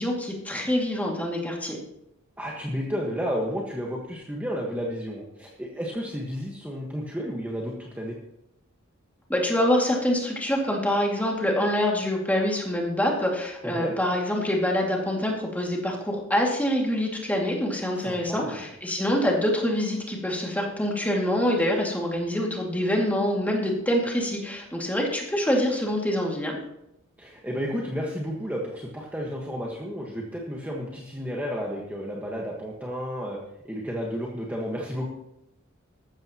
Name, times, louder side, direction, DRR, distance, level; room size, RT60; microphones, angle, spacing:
voice 1, 0.0-1.8 9.3-26.6, left 1 dB, 10° left, -1 dB, 2.4 m, -25 dB
voice 2, 2.4-8.1 13.6-13.9 17.9-18.7 27.2-33.4 33.6-35.1, equal, 10° right, -2 dB, 1.5 m, -32 dB
14.5 x 13.0 x 3.0 m, 0.82 s
head